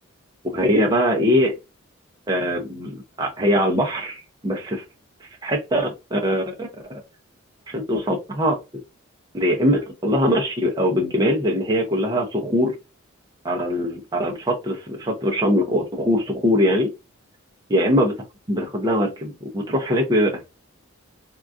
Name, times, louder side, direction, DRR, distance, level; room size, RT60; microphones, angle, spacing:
voice 1, 0.4-1.6 2.3-4.8 5.4-7.0 7.7-8.6 9.3-12.8 13.4-16.9 17.7-18.1 18.5-20.5, equal, 20° right, 0.5 m, -22 dB
3.6 x 2.3 x 2.5 m
head